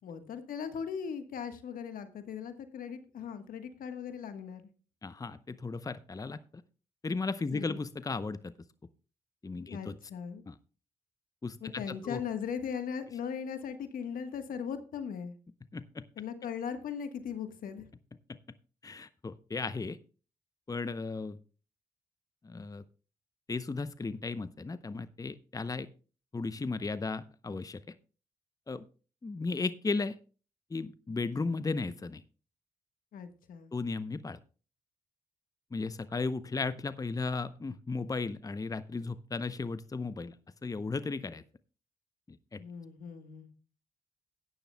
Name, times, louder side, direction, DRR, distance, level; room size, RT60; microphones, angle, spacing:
voice 1, 0.0-4.7 7.5-7.8 9.6-10.4 11.6-15.3 16.2-17.8 33.1-33.7 42.6-43.5, left 7 dB, 75° left, 9 dB, 1.3 m, -39 dB
voice 2, 5.0-6.4 7.0-8.5 9.4-10.0 10.5-10.6 11.4-12.2 15.7-16.0 18.3-18.4 18.8-20.0 20.7-21.4 22.4-22.8 23.5-25.9 26.3-27.8 28.7-28.8 29.2-30.1 30.7-32.2 33.7-34.4 35.7-40.3 40.6-41.4 42.3-42.6, left 3 dB, 25° left, 14 dB, 0.7 m, -35 dB
15.0 x 10.0 x 2.2 m, 0.36 s
supercardioid pair, 45°, 15 cm